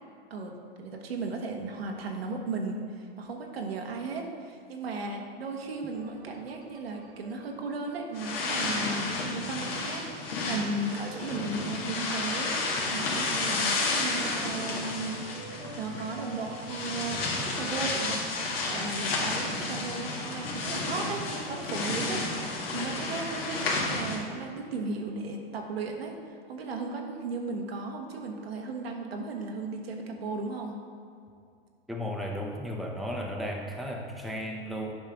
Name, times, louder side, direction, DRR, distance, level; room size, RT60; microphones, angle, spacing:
voice 1, 0.8-15.2 15.8-18.2 18.7-30.7, right 3 dB, 75° right, 2 dB, 1.3 m, -36 dB
sound 1, 5.9-22.6, right 2 dB, 30° right, 1.4 m, -48 dB
sound 2, 8.1-24.2, left 3 dB, 70° left, 1.9 m, -32 dB
voice 2, 31.9-34.9, equal, ahead, 0 dB, 0.8 m, -34 dB
10.5 x 5.5 x 3.6 m, 2.4 s
hypercardioid pair, 95°, 30 cm